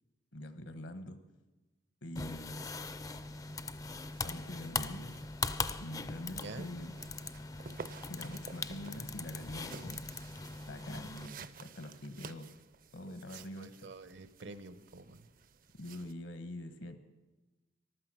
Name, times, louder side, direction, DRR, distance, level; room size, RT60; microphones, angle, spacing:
voice 1, 0.3-1.2 2.0-2.7 4.2-5.2 5.8-6.9 8.1-10.0 10.6-12.5 12.9-13.9 15.8-17.0, left 1 dB, 75° left, 10 dB, 1.2 m, -44 dB
sound 1, 2.2-11.3, left 4 dB, 20° left, 0.4 m, -40 dB
sound 2, 2.3-16.1, right 5 dB, 45° right, 0.5 m, -54 dB
voice 2, 6.4-6.7 13.3-15.3, right 3 dB, 70° right, 13 dB, 0.9 m, -48 dB
14.5 x 12.0 x 6.2 m, 1.1 s
head